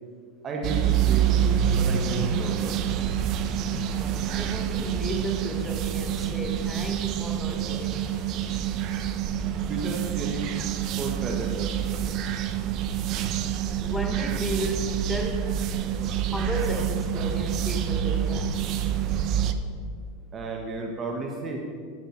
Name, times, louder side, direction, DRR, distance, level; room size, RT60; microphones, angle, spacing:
voice 1, 0.4-1.3 1.7-2.7 9.7-10.5 11.0-11.7 20.3-21.6, right 3 dB, 30° right, 0 dB, 1.3 m, -33 dB
sound 1, 0.6-19.5, right 9 dB, 45° right, 0.7 m, -27 dB
voice 2, 3.8-8.2 9.3-9.7 13.8-15.6 16.3-18.7, equal, 5° left, 3 dB, 1.1 m, -34 dB
12.0 x 6.4 x 6.6 m, 2.2 s
supercardioid pair, 130°, 0 cm